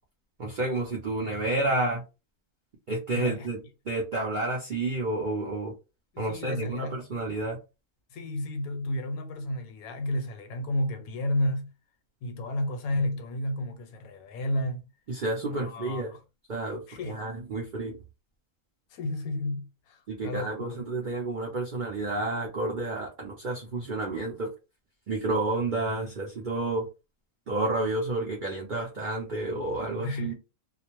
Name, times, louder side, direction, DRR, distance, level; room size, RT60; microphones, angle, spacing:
voice 1, 0.4-2.0 2.9-3.6 3.9-5.7 6.2-7.6 15.1-16.1 16.5-18.0 20.1-24.5 25.1-26.9 27.5-30.3, right 2 dB, 65° right, 0.4 m, -30 dB
voice 2, 3.1-3.5 6.1-7.4 8.1-11.7 12.2-14.9 15.4-16.2 16.9-17.2 18.9-20.9 30.0-30.3, left 1 dB, 80° left, 1.1 m, -32 dB
2.4 x 2.1 x 2.9 m
omnidirectional pair, 1.5 m